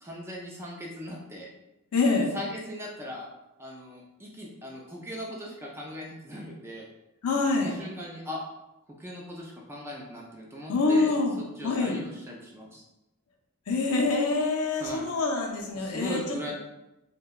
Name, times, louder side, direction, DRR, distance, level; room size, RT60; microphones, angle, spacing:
voice 1, 0.0-1.5 2.3-3.3 3.6-6.9 7.6-8.4 9.0-11.1 11.4-12.8 14.8-15.0 15.7-16.5, left 1 dB, 10° right, -2 dB, 0.3 m, -39 dB
voice 2, 1.9-2.3 7.2-7.8 10.7-11.4 11.6-12.0 13.7-16.4, left 3 dB, 80° left, 1 dB, 0.5 m, -25 dB
2.6 x 2.1 x 2.2 m, 0.93 s
head